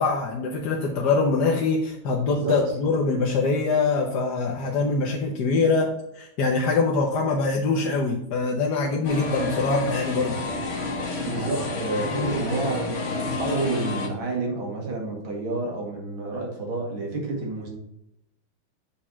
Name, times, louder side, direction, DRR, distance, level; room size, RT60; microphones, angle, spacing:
voice 1, 0.0-10.4 12.1-12.3, left 4 dB, 55° left, 0 dB, 1.4 m, -24 dB
sound 1, 9.0-14.1, left 2 dB, 40° left, 1.5 m, -30 dB
voice 2, 11.3-17.7, right 2 dB, 65° right, 0 dB, 2.8 m, -29 dB
7.2 x 5.2 x 5.7 m, 0.80 s
omnidirectional pair, 2.4 m